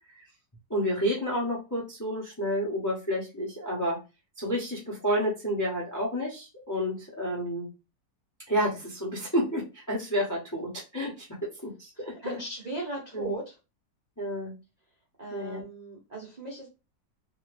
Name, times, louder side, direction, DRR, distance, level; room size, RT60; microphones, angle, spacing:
voice 1, 0.7-4.0 4.4-7.7 8.5-11.3 11.6-12.4 13.1-13.3 14.2-14.5 15.3-15.6, equal, 15° left, -3 dB, 0.6 m, -30 dB
voice 2, 12.2-13.6 15.2-16.7, right 2 dB, 40° right, -3 dB, 0.5 m, -37 dB
2.7 x 2.5 x 3.3 m, 0.28 s
omnidirectional pair, 2.0 m